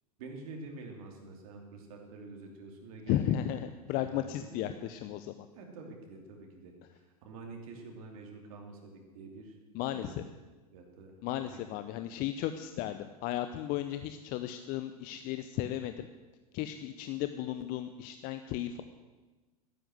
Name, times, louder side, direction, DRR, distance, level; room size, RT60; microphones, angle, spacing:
voice 1, 0.2-3.2 3.5-3.6 3.9-4.9 5.5-9.6 9.8-10.3 10.7-11.6, right 3 dB, 65° right, 2 dB, 3.0 m, -48 dB
voice 2, 3.1-5.5 9.7-10.2 11.2-16.1 16.5-18.8, left 12 dB, 50° left, 9 dB, 0.8 m, -34 dB
13.0 x 11.0 x 7.9 m, 1.2 s
hypercardioid pair, 90°, 19 cm